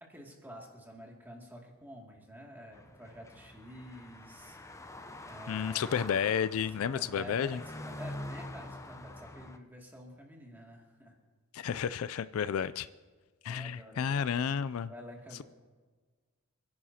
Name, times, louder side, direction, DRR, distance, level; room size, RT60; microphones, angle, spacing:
voice 1, 0.0-4.9 5.3-5.9 6.8-11.2 13.4-14.3 14.9-15.4, equal, 10° right, -1 dB, 2.3 m, -49 dB
sound 1, 2.7-9.6, left 1 dB, 15° left, 0.6 m, -45 dB
voice 2, 5.5-7.6 11.5-12.9 13.4-14.9, left 7 dB, 70° left, 15 dB, 0.3 m, -31 dB
28.0 x 11.0 x 2.8 m, 1.4 s
head